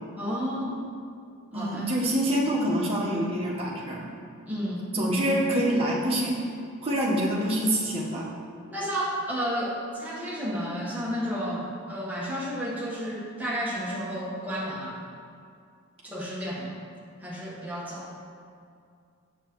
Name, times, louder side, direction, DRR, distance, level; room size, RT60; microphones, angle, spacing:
voice 1, 0.2-0.8 1.5-1.9 4.5-4.8 8.7-15.0 16.0-16.8 17.2-18.1, equal, 10° right, -6 dB, 1.3 m, -32 dB
voice 2, 1.5-4.0 4.9-6.3 6.8-8.3, right 1 dB, 30° right, -5 dB, 1.2 m, -26 dB
7.2 x 7.0 x 3.1 m, 2.3 s
head